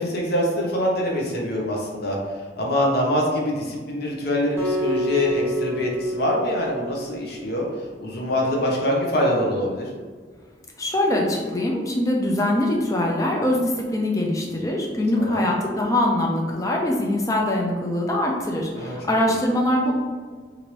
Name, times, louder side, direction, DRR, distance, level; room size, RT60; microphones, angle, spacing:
voice 1, 0.0-7.7 8.0-9.9 15.2-15.5 18.7-19.0 19.3-19.4, left 1 dB, 55° left, -2 dB, 0.7 m, -24 dB
Acoustic guitar, 4.6-7.8, equal, 10° right, 0.7 m, -29 dB
voice 2, 10.8-19.9, left 1 dB, 15° left, -1 dB, 0.4 m, -23 dB
3.0 x 2.6 x 3.0 m, 1.5 s
head